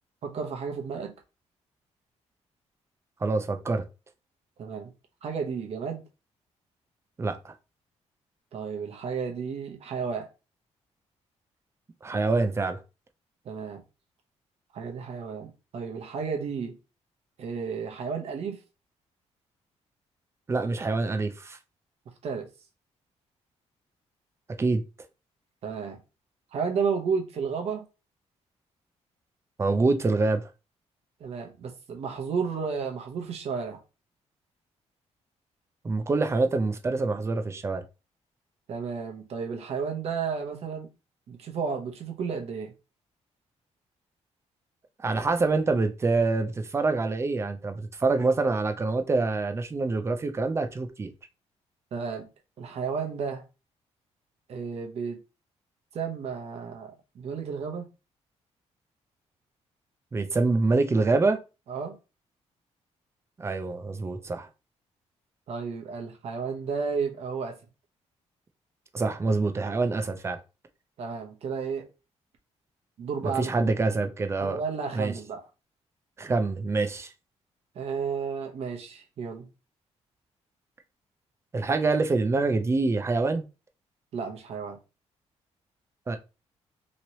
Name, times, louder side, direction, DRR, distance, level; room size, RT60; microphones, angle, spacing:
voice 1, 0.2-1.1 4.6-4.9 5.2-6.0 8.5-10.3 13.4-13.8 14.7-16.8 17.4-18.6 22.2-22.5 25.6-26.0 26.5-27.9 31.2-33.8 38.7-40.9 41.3-42.7 51.9-52.3 52.6-53.5 54.5-55.2 55.9-57.9 61.7-62.0 65.5-67.6 71.0-71.9 73.0-73.7 74.4-75.4 77.7-79.5 84.1-84.8, right 5 dB, 60° right, 0.8 m, -32 dB
voice 2, 3.2-3.8 7.2-7.5 12.0-12.8 20.5-21.6 24.6-24.8 29.6-30.5 35.8-37.8 45.0-51.1 60.1-61.4 63.4-64.5 68.9-70.4 73.2-74.6 74.9-75.1 76.2-77.1 81.5-83.4 86.1-86.2, right 3 dB, 20° right, 0.5 m, -26 dB
3.1 x 2.9 x 2.8 m
cardioid pair, 115°, 12 cm